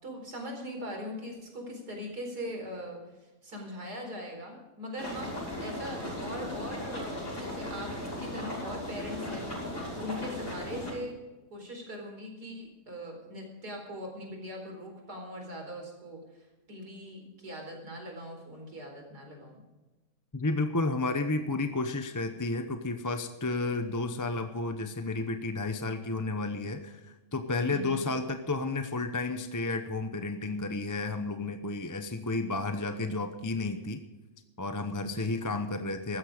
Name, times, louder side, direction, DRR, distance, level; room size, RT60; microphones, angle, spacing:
voice 1, 0.0-3.0 3.4-5.3 5.6-11.2 11.5-16.2 16.7-19.6 27.6-28.1 35.0-35.4, equal, 70° right, 1 dB, 4.9 m, -41 dB
sound 1, 5.0-10.9, left 1 dB, 50° left, 7.1 m, -37 dB
voice 2, 20.3-34.0 34.6-36.2, left 3 dB, 20° left, 7 dB, 0.5 m, -32 dB
15.5 x 13.0 x 5.0 m, 1.1 s
omnidirectional pair, 1.7 m